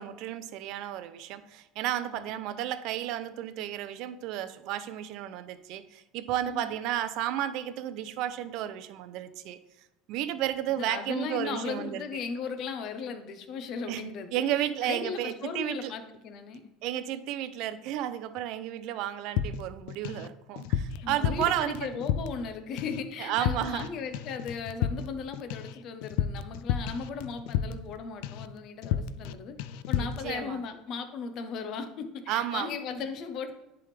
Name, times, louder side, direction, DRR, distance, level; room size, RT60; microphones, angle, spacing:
voice 1, 0.0-9.6 10.1-12.0 13.9-15.9 16.8-21.9 23.2-23.9 30.0-30.6 32.3-32.7, right 12 dB, 60° right, 12 dB, 0.5 m, -32 dB
voice 2, 6.4-6.7 10.7-16.6 21.0-29.5 29.9-33.5, left 5 dB, 50° left, 8 dB, 0.8 m, -37 dB
sound 1, 19.4-20.3 20.6-22.5 22.8-23.1 23.4-23.9 24.1-28.0 28.2-28.5 28.8-29.3 29.6-30.2, left 9 dB, 75° left, 0.3 m, -32 dB
10.0 x 3.5 x 3.4 m, 0.93 s
supercardioid pair, 130°, 0 cm